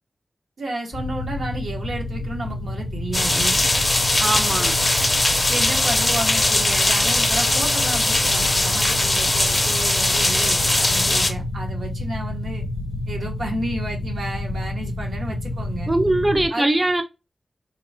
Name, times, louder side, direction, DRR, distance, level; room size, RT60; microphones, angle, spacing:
voice 1, 0.6-3.6 5.5-12.6 13.1-15.9 16.5-16.6, right 2 dB, 85° right, 0.7 m, -32 dB
sound 1, 0.9-16.5, left 2 dB, 90° left, 0.4 m, -29 dB
sound 2, 3.1-11.3, left 2 dB, 30° left, 0.6 m, -20 dB
voice 2, 4.2-4.7 15.9-17.0, right 1 dB, 25° right, 0.4 m, -21 dB
2.8 x 2.0 x 2.6 m
wide cardioid pair, 100°, 0 cm